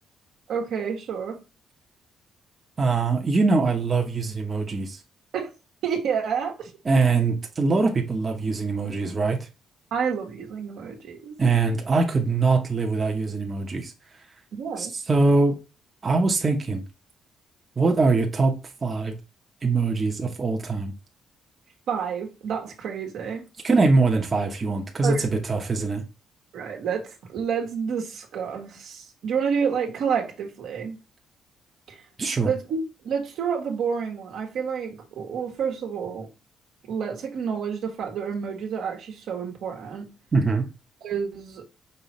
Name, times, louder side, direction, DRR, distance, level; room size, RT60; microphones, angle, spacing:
voice 1, 0.5-1.4 5.3-5.5 5.8-6.7 9.9-11.3 14.5-14.9 21.9-23.4 25.0-25.2 26.5-31.0 32.4-32.8 33.0-36.3 36.9-40.1 41.0-41.6, right 6 dB, 75° right, 1.3 m, -29 dB
voice 2, 2.8-5.0 6.8-9.5 11.4-13.9 14.8-15.6 16.0-16.8 17.8-19.1 19.6-20.9 23.6-26.0 32.2-32.5 40.3-40.7, right 3 dB, 30° right, 1.0 m, -23 dB
5.5 x 3.1 x 3.0 m
cardioid pair, 90°, 0 cm